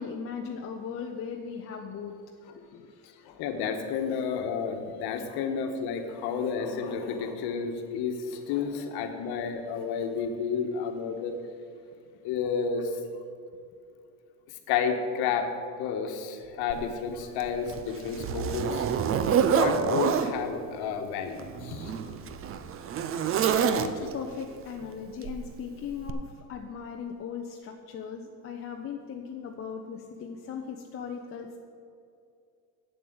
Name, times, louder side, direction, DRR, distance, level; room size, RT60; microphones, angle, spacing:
voice 1, 0.0-2.2 2.5-3.0 11.1-11.2 16.7-16.9 22.0-22.4 23.4-31.6, left 6 dB, 30° left, 2 dB, 0.7 m, -38 dB
voice 2, 3.2-11.4 12.2-13.0 14.7-15.5 15.8-18.9 19.5-22.0, left 6 dB, 55° left, 5 dB, 1.5 m, -31 dB
Zipper (clothing), 16.7-16.8 17.4-20.3 21.3-24.3 25.2-25.5 26.1-26.2, right 7 dB, 30° right, 0.6 m, -27 dB
7.9 x 7.5 x 7.8 m, 2.4 s
supercardioid pair, 130°, 45 cm